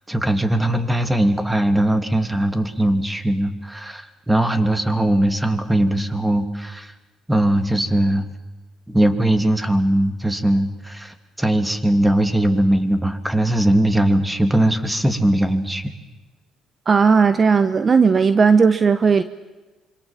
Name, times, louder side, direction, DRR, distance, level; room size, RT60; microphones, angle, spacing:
voice 1, 0.1-6.9 7.3-8.3 8.9-15.8, right 1 dB, 10° right, 8 dB, 3.0 m, -20 dB
voice 2, 16.9-19.2, right 5 dB, 40° right, 12 dB, 1.1 m, -15 dB
26.5 x 25.5 x 7.6 m, 1.2 s
hypercardioid pair, 60°, 0 cm